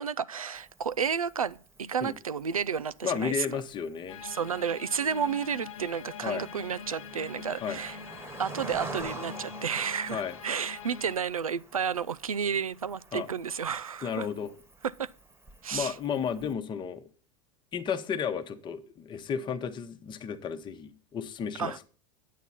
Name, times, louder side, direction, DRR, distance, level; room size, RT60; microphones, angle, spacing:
voice 1, 0.0-3.6 4.2-8.0 8.4-14.3 14.8-15.1 15.6-16.0 21.6-21.8, right 7 dB, 90° right, 0.4 m, -31 dB
Cricket, 0.5-16.5, right 2 dB, 15° right, 1.3 m, -48 dB
voice 2, 3.0-4.2 6.2-6.5 7.6-7.8 10.1-10.3 13.1-13.3 14.0-14.5 15.7-17.1 17.7-21.8, left 7 dB, 25° left, 1.0 m, -33 dB
sound 1, 4.1-11.2, left 7 dB, 70° left, 0.8 m, -44 dB
9.2 x 8.2 x 4.2 m
figure-of-eight pair, 90°, 18 cm